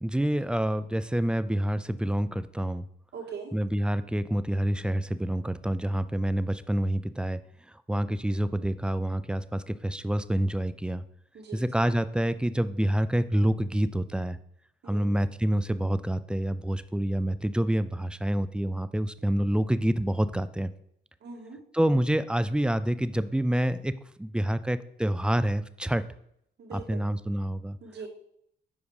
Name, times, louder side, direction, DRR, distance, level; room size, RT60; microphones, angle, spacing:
voice 1, 0.0-2.9 3.5-7.4 7.9-11.0 11.5-14.4 14.9-20.7 21.7-26.0 26.7-27.8, right 1 dB, 5° right, 14 dB, 0.4 m, -27 dB
voice 2, 3.1-3.5 11.3-11.6 14.8-15.1 21.2-21.6 26.6-27.0 27.8-28.1, right 5 dB, 60° right, 1 dB, 2.0 m, -41 dB
7.3 x 4.9 x 4.8 m, 0.72 s
cardioid pair, 90°, 20 cm